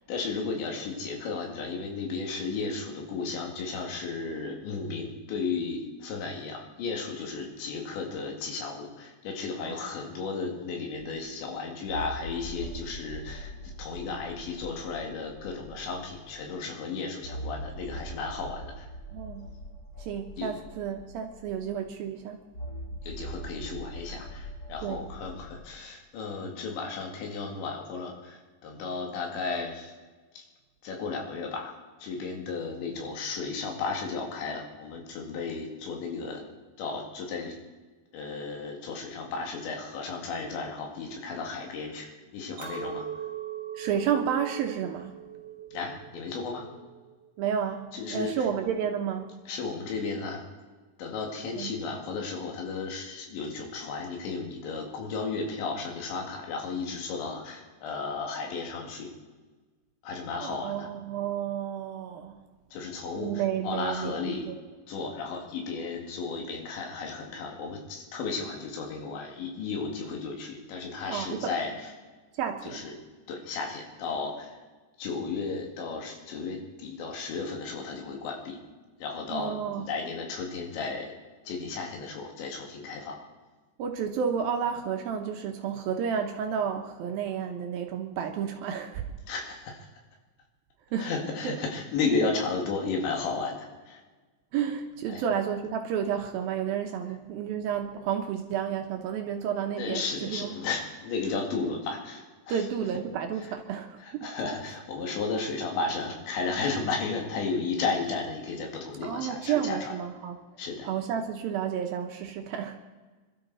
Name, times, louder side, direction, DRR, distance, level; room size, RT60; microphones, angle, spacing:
voice 1, 0.1-18.9 20.4-20.5 23.0-29.9 30.3-30.4 30.8-31.8 32.0-36.4 36.8-37.6 38.1-43.1 45.7-46.7 47.9-48.5 49.5-50.4 51.0-59.1 60.0-60.9 62.7-64.5 64.9-71.9 72.6-72.9 73.3-74.6 75.0-78.6 79.0-81.1 81.5-83.2 89.3-89.9 91.0-94.0 95.1-95.2 99.8-102.7 103.4-103.5 104.0-109.9 110.6-110.9, left 4 dB, 80° left, 1 dB, 4.3 m, -34 dB
sound 1, 11.0-11.1 11.9-16.4 17.2-21.9 22.5-25.6, right 1 dB, 50° left, 1.3 m, -41 dB
voice 2, 19.1-19.5 20.0-22.4 24.8-25.0 43.8-45.2 47.4-49.3 51.5-51.7 60.4-62.4 63.2-64.5 71.1-71.5 72.4-72.8 79.3-79.8 83.8-89.1 90.9-91.1 91.4-91.5 92.2-92.3 94.5-100.5 102.5-104.3 109.0-110.4 110.8-112.8, right 8 dB, 75° right, 4 dB, 2.2 m, -31 dB
Chink clink, 42.6-47.9, right 8 dB, 20° right, 5.1 m, -40 dB
26.0 x 12.5 x 4.1 m, 1.3 s
omnidirectional pair, 5.2 m